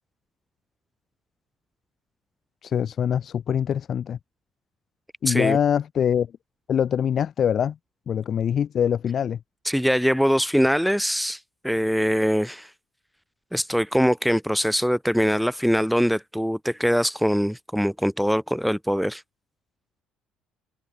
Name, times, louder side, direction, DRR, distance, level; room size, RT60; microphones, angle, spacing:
voice 1, 2.6-4.2 5.2-6.3 6.7-7.8 8.1-9.4, left 8 dB, 50° left, 5.4 m, -23 dB
voice 2, 5.3-5.6 9.7-11.4 11.6-12.7 13.5-19.2, equal, ahead, 5.4 m, -22 dB
supercardioid pair, 95°, 0 cm